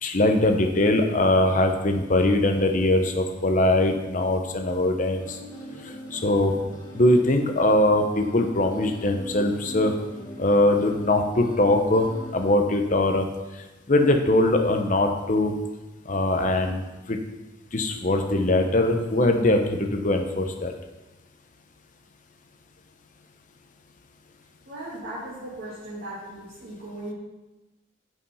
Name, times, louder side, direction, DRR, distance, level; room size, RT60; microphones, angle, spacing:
voice 1, 0.0-5.4 6.1-6.5 6.9-9.9 10.4-12.1 12.3-13.3 13.9-15.5 16.1-16.8 17.1-17.2 17.7-20.7, left 1 dB, 40° left, 5 dB, 0.8 m, -21 dB
sound 1, 5.1-12.5, equal, 20° left, 1.3 m, -42 dB
voice 2, 24.6-27.1, right 1 dB, 50° right, -11 dB, 2.8 m, -37 dB
8.6 x 5.1 x 5.5 m, 1.1 s
head